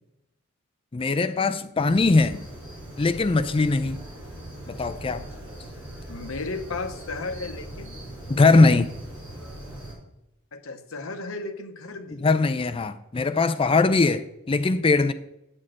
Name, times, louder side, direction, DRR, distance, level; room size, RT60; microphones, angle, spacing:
voice 1, 0.9-2.4 3.0-4.0 4.7-5.3 8.3-8.9 12.2-15.1, left 3 dB, 25° left, 0.4 m, -21 dB
sound 1, 1.9-9.9, right 1 dB, 25° right, 4.1 m, -40 dB
voice 2, 6.1-8.0 10.5-12.3, left 3 dB, 70° left, 0.9 m, -34 dB
9.7 x 4.5 x 7.5 m
head